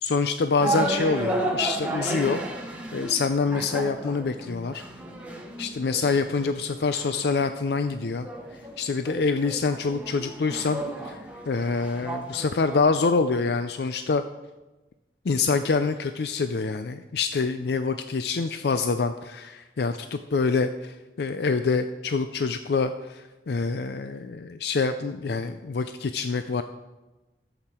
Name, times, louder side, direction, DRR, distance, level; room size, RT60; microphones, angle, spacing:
voice 1, 0.0-2.4 2.9-4.8 5.6-8.3 8.8-11.2 11.5-14.2 15.3-26.6, left 4 dB, 70° left, 9 dB, 0.4 m, -26 dB
sound 1, 0.6-12.8, right 1 dB, 10° right, 1.1 m, -33 dB
13.5 x 7.9 x 4.4 m, 1.1 s
head